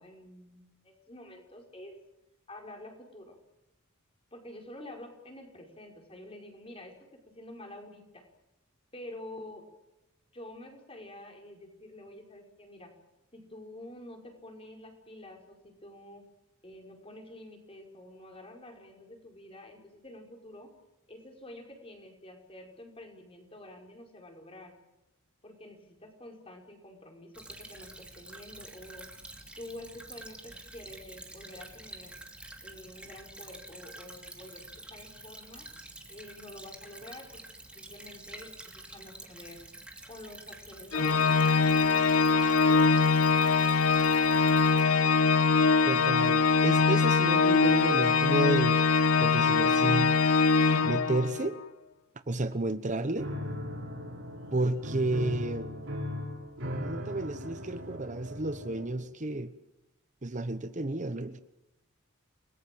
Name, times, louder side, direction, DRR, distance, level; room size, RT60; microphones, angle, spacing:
voice 1, 0.0-1.9 2.5-3.4 4.3-8.2 8.9-9.6 10.3-12.9 13.3-16.2 16.6-20.7 21.1-24.7 25.4-29.1 29.6-32.2 32.6-35.7 36.1-39.6 40.1-43.1, left 1 dB, 25° left, 3 dB, 5.2 m, -48 dB
Stream / Trickle dribble, 27.3-44.8, right 2 dB, 5° right, 2.9 m, -48 dB
Organ, 40.9-51.5, left 4 dB, 80° left, 1.0 m, -23 dB
voice 2, 45.9-48.8 49.2-50.1 50.8-51.6 52.3-53.3 54.5-55.9 56.8-59.5 60.2-61.4, right 2 dB, 35° right, 11 dB, 1.0 m, -31 dB
Piano, 53.2-59.1, left 1 dB, 60° right, 5.8 m, -38 dB
30.0 x 20.0 x 7.7 m, 0.94 s
head